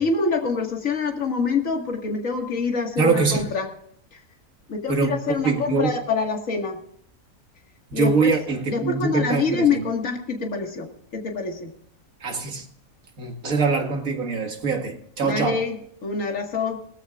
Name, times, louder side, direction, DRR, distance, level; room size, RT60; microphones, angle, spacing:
voice 1, 0.0-3.7 4.1-4.2 4.7-6.8 7.9-8.3 8.7-11.7 15.2-15.8 16.0-16.8, left 4 dB, 60° left, 3 dB, 2.3 m, -25 dB
voice 2, 3.0-3.4 4.9-5.9 7.9-9.8 12.2-12.7 13.2-15.6, right 4 dB, 65° right, 4 dB, 2.2 m, -23 dB
18.5 x 15.0 x 2.5 m, 0.65 s
omnidirectional pair, 1.6 m